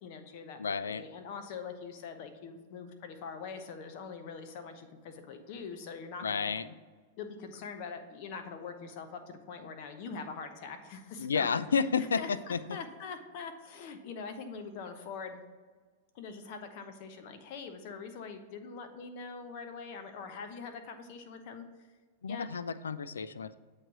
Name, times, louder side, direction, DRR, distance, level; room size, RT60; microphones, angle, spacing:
voice 1, 0.0-6.5 7.2-11.9 12.2-15.4 16.1-21.9 22.3-22.5, left 5 dB, 55° left, 7 dB, 0.9 m, -43 dB
voice 2, 0.6-1.0 6.2-6.7 11.2-12.8 22.2-23.6, left 5 dB, 90° left, 15 dB, 0.3 m, -31 dB
7.8 x 3.2 x 5.9 m, 1.5 s
hypercardioid pair, 110°, 0 cm